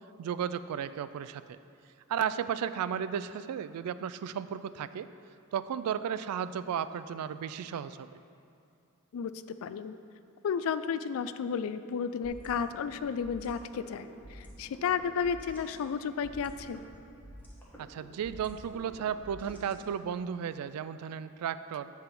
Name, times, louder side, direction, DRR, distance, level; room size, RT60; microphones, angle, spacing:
voice 1, 0.2-1.6 2.1-5.1 5.5-8.1 17.8-21.9, right 8 dB, 85° right, 15 dB, 0.3 m, -34 dB
voice 2, 9.6-9.9 10.4-16.8, left 6 dB, 65° left, 12 dB, 0.3 m, -32 dB
sound 1, 12.2-20.2, equal, 10° left, 1.2 m, -50 dB
8.8 x 3.5 x 5.9 m, 2.6 s
head